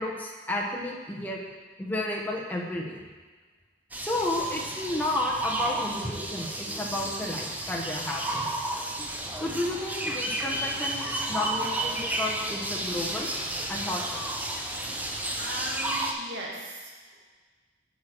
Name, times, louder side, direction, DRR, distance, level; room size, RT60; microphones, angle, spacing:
voice 1, 0.0-1.4 1.8-3.0 4.0-8.4 9.4-13.3 13.7-14.0, left 1 dB, 10° left, -2 dB, 1.2 m, -32 dB
sound 1, 3.9-16.1, right 1 dB, 10° right, 0.7 m, -32 dB
voice 2, 15.4-17.3, right 1 dB, 75° right, -3 dB, 1.9 m, -39 dB
8.3 x 4.8 x 6.2 m, 1.4 s
head